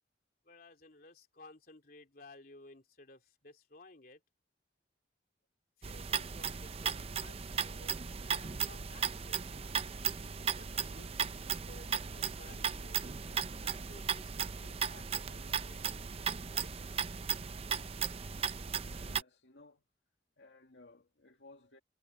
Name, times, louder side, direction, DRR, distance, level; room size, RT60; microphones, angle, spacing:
voice 1, 0.4-4.2 5.8-9.5 10.5-15.8 16.5-16.7, left 2 dB, 55° left, 3.2 m, -57 dB
sound 1, 5.8-19.2, right 7 dB, 35° right, 0.6 m, -36 dB
voice 2, 18.8-19.8 20.4-21.8, left 2 dB, 85° left, 2.1 m, -58 dB
head